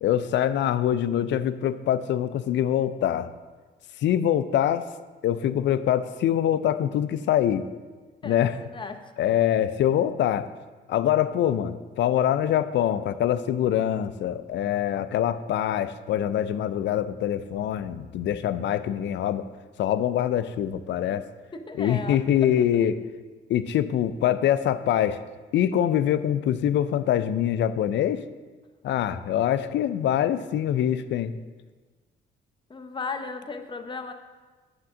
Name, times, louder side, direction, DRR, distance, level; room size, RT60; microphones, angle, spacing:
voice 1, 0.0-3.3 4.0-4.9 5.2-7.6 8.2-8.6 9.2-10.5 10.9-19.5 19.8-21.2 21.8-23.0 23.5-25.2 25.5-28.2 28.8-31.3, left 10 dB, 65° left, 13 dB, 0.4 m, -24 dB
voice 2, 8.2-9.0 21.1-21.2 21.5-22.5 32.7-34.1, left 4 dB, 25° left, 6 dB, 0.7 m, -36 dB
7.4 x 3.7 x 6.1 m, 1.4 s
cardioid pair, 90°, 20 cm